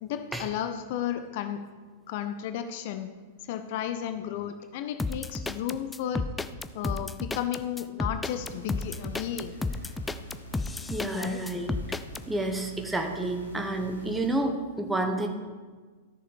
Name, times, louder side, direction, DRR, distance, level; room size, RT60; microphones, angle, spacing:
voice 1, 0.0-1.6 2.1-3.1 3.5-6.2 6.7-9.6 11.1-11.4, left 10 dB, 50° left, 9 dB, 0.7 m, -33 dB
sound 1, 5.0-12.2, left 3 dB, 10° left, 0.4 m, -32 dB
sound 2, 8.3-14.4, equal, 90° left, 1.4 m, -46 dB
voice 2, 10.9-11.7 12.3-15.3, right 1 dB, 10° right, 4 dB, 1.3 m, -29 dB
13.5 x 6.7 x 5.1 m, 1.4 s
figure-of-eight pair, 95°, 0 cm